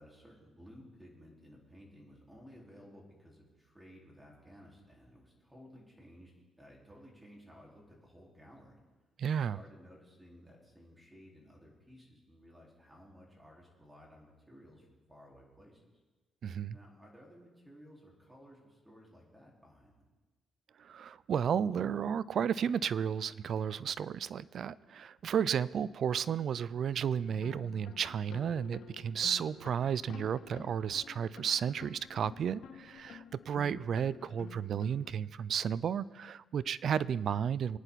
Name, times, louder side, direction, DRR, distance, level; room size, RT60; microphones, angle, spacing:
voice 1, 0.0-8.8 9.3-15.8 16.7-20.0, equal, 5° right, -3 dB, 4.6 m, -56 dB
voice 2, 9.2-9.6 16.4-16.8 20.8-37.8, right 8 dB, 60° right, 19 dB, 0.5 m, -33 dB
sound 1, 27.2-35.1, left 9 dB, 75° left, 1.1 m, -51 dB
24.5 x 9.9 x 4.2 m, 1.2 s
cardioid pair, 90°, 0 cm